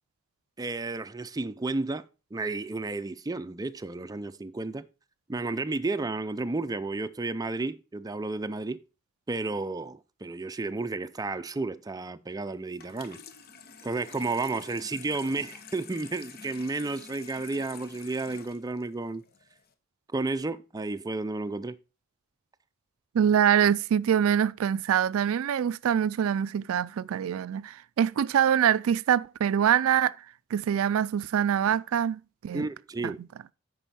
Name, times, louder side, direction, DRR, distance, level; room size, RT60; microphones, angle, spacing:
voice 1, 0.6-2.0 2.3-4.9 5.3-8.8 9.3-13.2 13.8-19.2 20.1-21.8 32.5-33.2, right 3 dB, 20° right, 0.5 m, -32 dB
Water tap faucet / Sink (filling or washing), 12.7-19.7, left 6 dB, 50° left, 1.0 m, -48 dB
voice 2, 23.1-30.2 30.5-32.7 33.0-33.1, right 9 dB, 85° right, 0.3 m, -24 dB
9.1 x 5.4 x 4.1 m
head